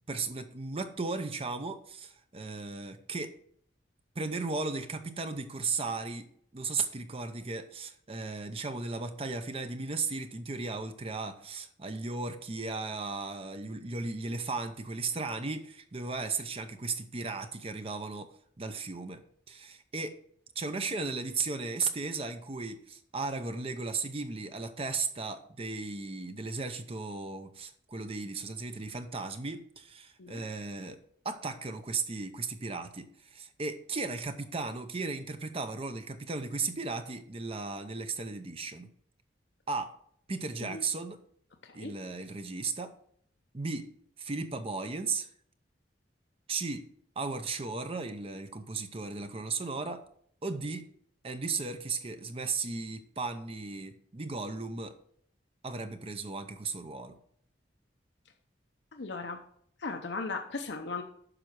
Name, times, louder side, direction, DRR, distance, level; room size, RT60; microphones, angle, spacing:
voice 1, 0.1-3.3 4.2-19.2 19.5-20.2 20.6-38.9 39.7-39.9 40.3-41.2 41.7-42.9 43.5-43.9 44.2-45.3 46.5-46.9 47.2-50.0 50.4-50.9 51.2-55.0 55.6-57.2, right 4 dB, 35° right, 8 dB, 0.7 m, -36 dB
voice 2, 58.9-59.4 59.8-61.0, left 3 dB, 70° left, 4 dB, 0.8 m, -37 dB
9.9 x 6.2 x 4.6 m, 0.63 s
head